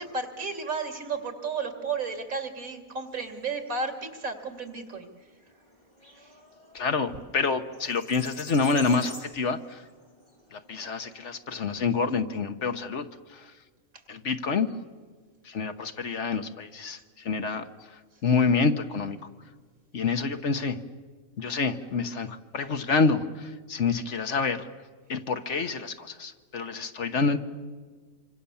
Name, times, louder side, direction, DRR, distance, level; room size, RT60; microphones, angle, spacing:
voice 1, 0.0-5.1 6.2-6.3, right 4 dB, 90° right, 5 dB, 3.0 m, -33 dB
sound 1, 3.1-11.1, left 1 dB, 30° left, 5.7 m, -49 dB
voice 2, 6.7-9.8 10.5-13.4 14.1-14.7 15.5-17.7 18.2-19.2 19.9-20.8 21.4-24.7 25.1-27.4, left 4 dB, 60° left, 8 dB, 1.5 m, -27 dB
26.5 x 25.5 x 7.1 m, 1.4 s
omnidirectional pair, 1.4 m